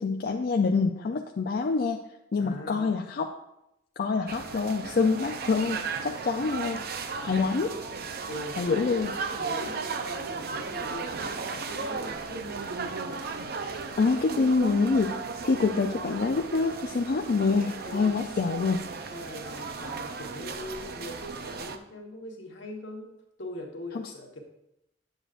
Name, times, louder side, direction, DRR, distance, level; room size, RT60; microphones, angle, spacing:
voice 1, 0.0-2.0 2.3-3.3 4.0-6.8 7.2-7.7 8.6-9.1 14.0-15.2 15.4-18.8 23.9-24.1, left 4 dB, 55° left, 2 dB, 0.4 m, -26 dB
voice 2, 2.4-2.9 8.3-12.6 17.9-18.2 19.1-23.1 23.4-24.4, left 1 dB, 80° left, 1 dB, 1.3 m, -41 dB
sound 1, 4.3-21.8, right 4 dB, 55° right, 0.5 m, -35 dB
8.0 x 7.7 x 2.5 m, 0.85 s
head